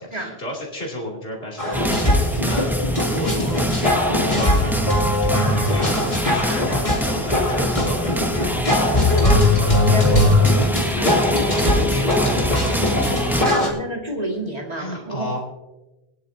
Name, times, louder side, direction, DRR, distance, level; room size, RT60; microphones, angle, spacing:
voice 1, 0.0-4.8 5.2-8.1 8.4-10.2 10.9-12.8 13.3-13.6 14.7-15.4, equal, 70° left, -3 dB, 3.1 m, -32 dB
sound 1, 1.6-13.7, left 2 dB, 45° left, 3.4 m, -20 dB
sound 2, 1.7-13.5, equal, ahead, 0.8 m, -25 dB
voice 2, 9.9-10.3 13.3-15.4, right 1 dB, 40° right, 0 dB, 2.3 m, -28 dB
21.5 x 10.5 x 2.7 m, 1.0 s
omnidirectional pair, 1.0 m